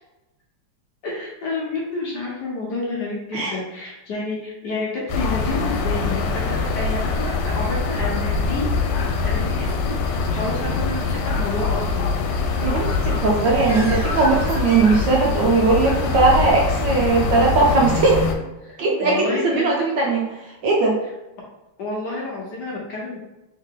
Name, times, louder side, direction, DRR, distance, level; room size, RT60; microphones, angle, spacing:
voice 1, 1.0-8.7 9.2-12.2 18.6-19.7 21.8-23.2, left 2 dB, 60° left, -3 dB, 1.2 m, -29 dB
sound 1, 5.1-18.3, left 4 dB, 85° left, 1.5 m, -23 dB
Bird, 12.5-15.5, equal, 35° left, 0.6 m, -35 dB
voice 2, 12.6-18.2 18.8-20.2 20.6-21.0, right 3 dB, 65° right, -2 dB, 1.2 m, -19 dB
3.6 x 3.3 x 3.7 m, 1.0 s
omnidirectional pair, 2.4 m